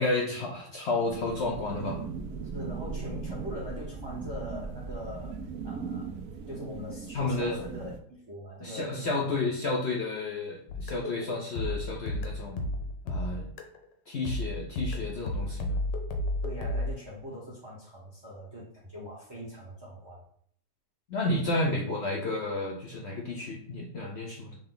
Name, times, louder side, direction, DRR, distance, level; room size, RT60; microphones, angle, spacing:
voice 1, 0.0-2.0 7.1-7.6 8.6-12.6 13.0-13.5 14.1-15.8 21.1-24.6, left 2 dB, 70° left, -1 dB, 0.6 m, -31 dB
sound 1, 1.1-8.0, right 5 dB, 70° right, 0.8 m, -38 dB
voice 2, 2.5-5.4 5.6-6.1 6.5-9.4 16.4-20.2, equal, 25° right, -4 dB, 0.5 m, -41 dB
sound 2, 10.7-13.9 14.3-16.9, left 1 dB, 85° left, 1.4 m, -32 dB
6.3 x 2.2 x 3.8 m, 0.62 s
omnidirectional pair, 1.8 m